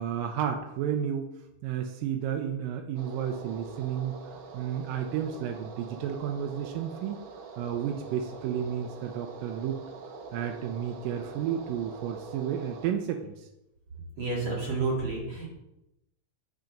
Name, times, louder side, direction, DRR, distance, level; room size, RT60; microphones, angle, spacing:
voice 1, 0.0-1.3 1.6-4.2 4.5-7.2 7.6-9.8 10.3-13.5, right 9 dB, 80° right, 4 dB, 2.3 m, -32 dB
sound 1, 3.0-12.9, right 4 dB, 65° right, 2.0 m, -44 dB
voice 2, 14.2-15.5, right 3 dB, 40° right, -4 dB, 2.6 m, -30 dB
9.4 x 6.0 x 5.2 m, 0.90 s
omnidirectional pair, 4.0 m